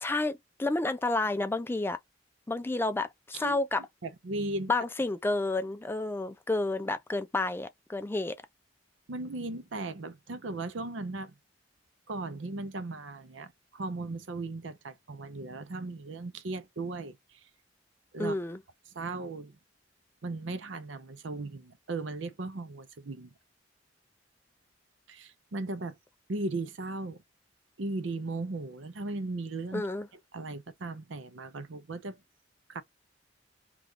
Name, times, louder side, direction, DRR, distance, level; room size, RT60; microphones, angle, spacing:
voice 1, 0.0-2.0 2.5-3.8 4.7-8.4 18.2-18.6 29.7-30.1, left 2 dB, 10° left, 0.4 m, -30 dB
voice 2, 4.0-4.7 9.1-11.3 12.1-17.4 18.1-18.4 18.9-19.6 20.2-23.3 25.1-26.0 26.3-27.2 27.8-29.8 30.3-32.2 32.7-32.8, right 2 dB, 80° right, 0.7 m, -37 dB
3.0 x 2.4 x 3.5 m
head